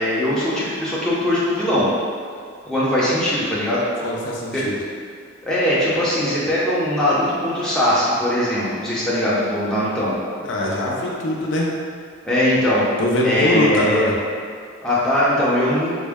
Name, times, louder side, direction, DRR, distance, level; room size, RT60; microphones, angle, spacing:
voice 1, 0.0-1.9 2.6-3.8 4.5-4.6 5.4-10.1 12.2-12.8 13.2-14.1 14.8-15.9, left 1 dB, 5° left, -9 dB, 0.6 m, -20 dB
voice 2, 4.0-4.8 10.4-11.7 13.0-14.1, left 1 dB, 65° left, -3 dB, 0.5 m, -22 dB
3.6 x 2.1 x 3.4 m, 2.1 s
head